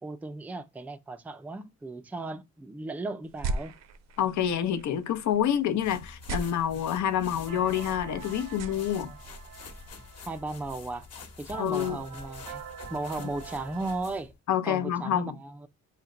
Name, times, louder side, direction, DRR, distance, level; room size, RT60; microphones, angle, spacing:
voice 1, 0.0-3.7 9.0-9.2 10.3-11.1 11.4-12.6 12.9-14.3 14.6-15.7, right 2 dB, 5° right, 0.4 m, -36 dB
sound 1, 3.2-9.9, right 2 dB, 60° right, 0.6 m, -40 dB
voice 2, 4.2-9.1 11.6-12.0 14.5-15.4, left 10 dB, 70° left, 0.7 m, -27 dB
sound 2, 5.8-14.3, left 5 dB, 55° left, 1.2 m, -47 dB
sound 3, 7.5-14.1, right 8 dB, 90° right, 1.0 m, -45 dB
4.3 x 2.2 x 3.7 m
cardioid pair, 115°, 30 cm